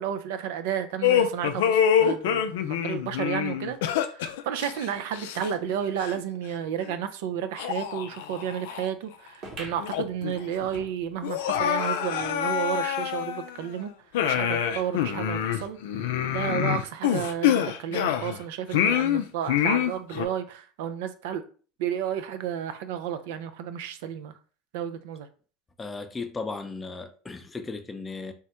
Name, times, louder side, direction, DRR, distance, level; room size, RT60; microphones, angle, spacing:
voice 1, 0.0-13.9 14.2-21.5 21.8-24.3 24.7-25.3, right 9 dB, 75° right, 0.3 m, -32 dB
sound 1, 1.0-5.7 6.0-6.2 6.9-7.0 7.6-8.9 9.3-9.4 9.8-10.4 10.6-10.7 11.2-13.7 14.1-18.4 18.7-20.3, left 9 dB, 75° left, 0.3 m, -26 dB
sound 2, 9.4-12.4 12.8-12.9 13.1-13.2 14.0-14.1, right 1 dB, 55° right, 1.1 m, -45 dB
voice 2, 25.8-28.3, left 3 dB, 20° left, 0.5 m, -36 dB
3.4 x 2.1 x 2.9 m
hypercardioid pair, 85°, 0 cm